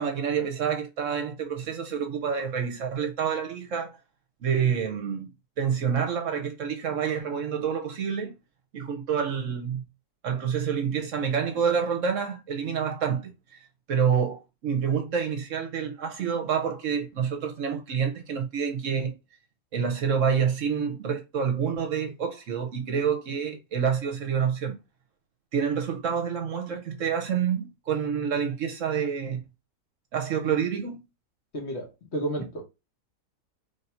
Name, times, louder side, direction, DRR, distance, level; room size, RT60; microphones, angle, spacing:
voice 1, 0.0-4.0 4.4-5.3 5.6-8.3 8.7-9.8 10.2-13.6 13.9-19.1 19.7-24.8 25.5-29.4 30.1-31.0, right 7 dB, 60° right, 1.0 m, -28 dB
voice 2, 31.5-32.6, right 1 dB, 50° left, 1.2 m, -32 dB
3.4 x 2.7 x 4.2 m
omnidirectional pair, 1.6 m